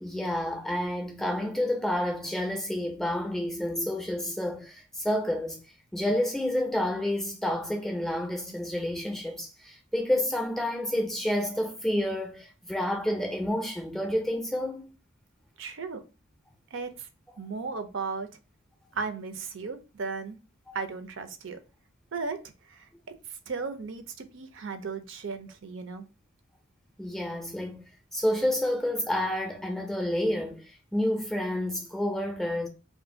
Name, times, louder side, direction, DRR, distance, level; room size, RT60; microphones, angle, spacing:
voice 1, 0.0-5.6 5.9-14.9 20.7-20.8 27.0-27.8 28.1-32.7, left 1 dB, ahead, 0.5 m, -29 dB
voice 2, 15.6-16.0 16.7-17.1 17.4-18.3 18.9-20.4 20.7-21.6 22.1-22.4 22.6-22.9 23.3-26.0, right 4 dB, 70° right, 0.5 m, -35 dB
2.5 x 2.5 x 3.6 m
head